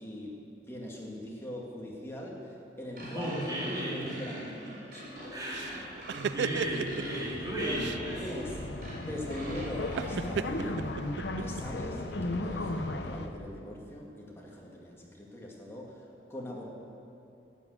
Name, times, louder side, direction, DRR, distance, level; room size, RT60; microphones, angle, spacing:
voice 1, 0.0-2.4 2.8-4.5 4.7-5.0 7.6-7.8 8.2-8.6 9.0-10.9 11.4-16.0 16.3-16.6, left 1 dB, 15° left, -3 dB, 2.1 m, -41 dB
sound 1, 2.9-10.1, right 1 dB, 55° right, 4.0 m, -45 dB
voice 2, 3.0-4.2 5.3-5.8 6.1-8.2, right 1 dB, 20° right, -5 dB, 3.3 m, -34 dB
sound 2, 5.1-13.3, left 2 dB, 75° left, 0.8 m, -37 dB
sound 3, 5.5-7.2 7.8-8.0 10.0-11.6, right 7 dB, 80° right, 0.3 m, -34 dB
12.5 x 9.2 x 8.2 m, 2.8 s
head